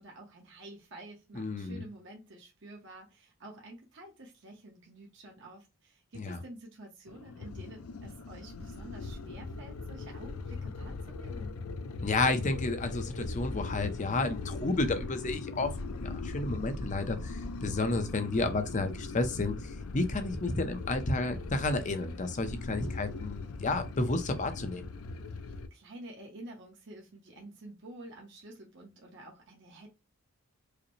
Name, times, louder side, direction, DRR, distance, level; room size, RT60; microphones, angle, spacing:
voice 1, 0.0-11.5 25.3-29.9, right 1 dB, 55° right, 1.0 m, -49 dB
voice 2, 1.3-1.8 6.1-6.4 12.0-24.9, left 2 dB, 35° left, 0.6 m, -31 dB
sound 1, 7.1-25.7, left 3 dB, 90° left, 0.5 m, -40 dB
4.8 x 2.1 x 3.1 m
head